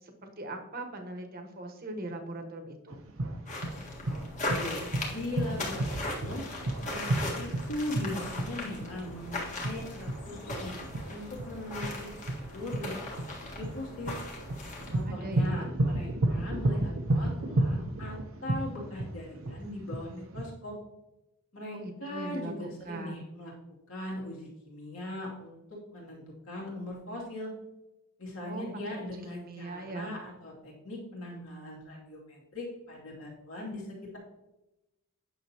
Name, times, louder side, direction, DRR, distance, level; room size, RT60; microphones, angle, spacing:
voice 1, 0.0-3.0 15.1-15.7 21.7-23.2 28.4-30.1, right 2 dB, 45° right, 4 dB, 1.1 m, -40 dB
sound 1, 2.9-20.4, right 1 dB, 65° right, 0.8 m, -31 dB
sound 2, 3.5-15.0, left 2 dB, 35° left, 1.7 m, -39 dB
voice 2, 4.4-4.8 5.1-6.4 6.8-10.7 11.1-12.2 12.5-14.2 14.9-20.8 21.5-23.5 23.9-25.6 25.9-27.5 28.2-33.8, left 1 dB, 65° left, -3 dB, 2.6 m, -40 dB
9.3 x 6.5 x 2.9 m, 0.96 s
head